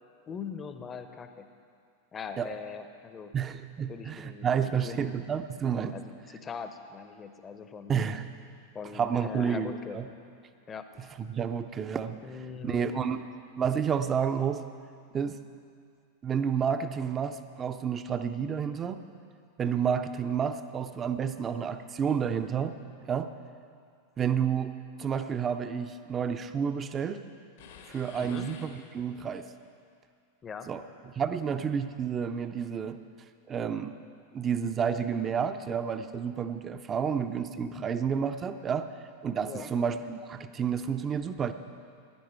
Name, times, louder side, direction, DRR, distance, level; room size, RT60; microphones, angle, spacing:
voice 1, 0.3-1.5 2.1-3.3 3.9-5.3 5.9-8.2 8.7-10.0 10.7-10.9 12.2-13.1 28.2-28.5 30.4-30.7 39.4-39.7, left 6 dB, 20° left, 9 dB, 0.8 m, -41 dB
voice 2, 3.3-6.0 7.9-8.2 8.9-10.1 11.2-12.2 12.6-13.2 13.6-14.6 15.1-15.4 16.2-19.0 19.6-22.8 23.1-23.3 24.2-27.2 27.9-29.5 30.7-33.0 33.5-33.9 34.3-38.9 39.2-41.5, right 7 dB, 25° right, 10 dB, 0.6 m, -30 dB
sound 1, 27.6-29.4, left 6 dB, 60° left, 1.2 m, -50 dB
15.5 x 10.5 x 4.6 m, 2.3 s
figure-of-eight pair, 90°, 0 cm